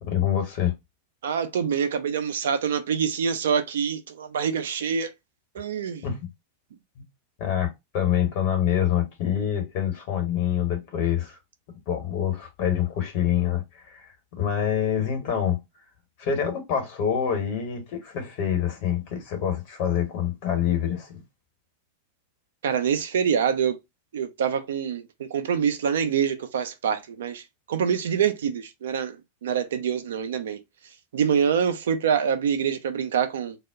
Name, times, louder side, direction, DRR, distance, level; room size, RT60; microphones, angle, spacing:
voice 1, 0.1-0.7 6.0-6.2 7.0-7.1 7.4-11.4 11.9-15.6 16.2-21.2, left 9 dB, 45° left, 1.0 m, -26 dB
voice 2, 1.2-5.1 5.5-6.0 22.6-23.8 24.1-30.6 31.1-33.6, right 7 dB, 60° right, 0.4 m, -25 dB
2.1 x 2.0 x 3.5 m
figure-of-eight pair, 90°, 0 cm